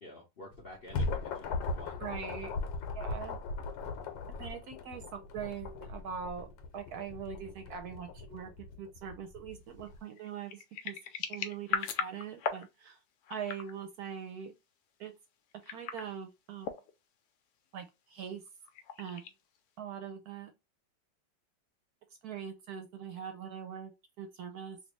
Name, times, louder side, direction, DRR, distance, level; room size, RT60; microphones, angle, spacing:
voice 1, 0.0-2.0, left 1 dB, 55° left, 0.6 m, -50 dB
sound 1, 0.5-10.0, left 3 dB, 90° left, 1.4 m, -39 dB
voice 2, 2.0-2.5 2.9-3.4 4.3-6.5 6.7-11.0 11.3-13.0 13.3-14.5 15.0-15.1 15.7-16.8 17.7-18.4 19.0-19.2 19.8-20.5 22.2-23.9 24.2-24.8, right 7 dB, 70° right, 1.0 m, -42 dB
sound 2, 9.9-12.7 13.2-13.7 15.5-16.1 16.6-16.9 18.5-19.6, left 6 dB, 75° left, 1.1 m, -38 dB
3.3 x 2.6 x 3.0 m
omnidirectional pair, 2.0 m